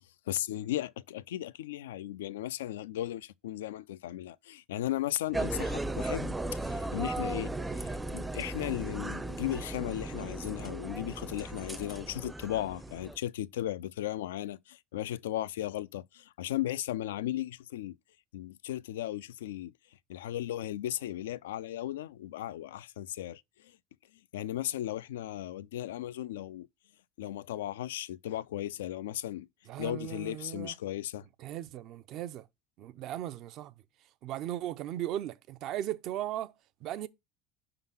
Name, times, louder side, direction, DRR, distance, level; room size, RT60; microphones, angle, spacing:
voice 1, 0.3-18.0 18.3-19.7 20.1-23.4 24.3-26.7 27.2-29.5 29.8-31.3, left 13 dB, 90° left, 0.3 m, -36 dB
sound 1, 5.3-13.2, right 2 dB, 10° right, 0.5 m, -36 dB
voice 2, 29.7-30.7 31.4-32.5 32.8-33.7 34.2-36.5 36.8-37.1, right 12 dB, 60° right, 0.6 m, -37 dB
5.4 x 3.8 x 5.6 m
hypercardioid pair, 85°, 0 cm